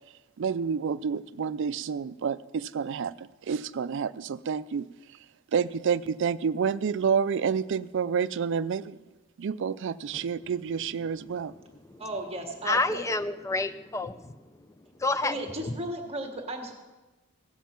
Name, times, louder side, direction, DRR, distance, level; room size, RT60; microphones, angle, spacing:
voice 1, 0.4-4.9 5.5-9.0 9.4-11.5, right 6 dB, 60° right, 16 dB, 0.4 m, -29 dB
voice 2, 12.0-13.0 15.2-16.7, right 1 dB, 30° right, 3 dB, 1.5 m, -35 dB
voice 3, 12.6-14.3 15.0-15.3, left 2 dB, 15° left, 12 dB, 0.5 m, -28 dB
16.0 x 7.4 x 5.8 m, 1.1 s
head